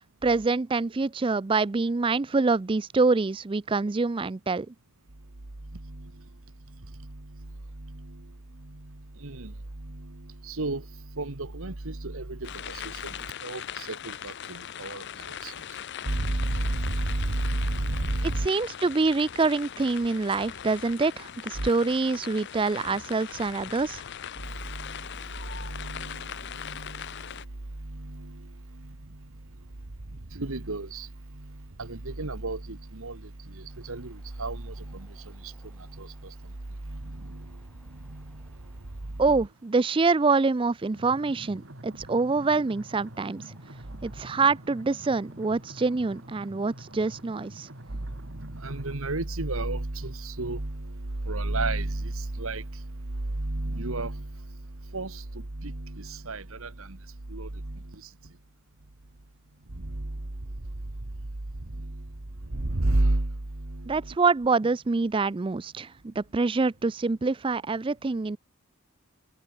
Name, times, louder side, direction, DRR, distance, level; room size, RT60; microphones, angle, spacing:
voice 1, 0.2-4.7 18.2-24.0 39.2-43.4 44.0-47.7 63.9-68.4, right 3 dB, 25° right, 0.4 m, -26 dB
voice 2, 5.7-6.2 6.9-7.5 7.7-8.3 8.6-15.5 16.0-18.5 21.6-21.7 24.4-27.3 27.8-29.2 30.3-36.5 36.8-38.7 43.9-44.0 47.9-54.6 54.8-57.0 57.3-58.1 59.7-60.3 61.6-62.1 62.5-64.2, right 2 dB, 75° right, 1.6 m, -33 dB
sound 1, 12.4-27.5, left 9 dB, 55° left, 0.6 m, -40 dB
sound 2, 33.7-48.9, left 1 dB, 5° left, 7.9 m, -67 dB
sound 3, 40.9-48.9, right 1 dB, 60° right, 3.3 m, -46 dB
head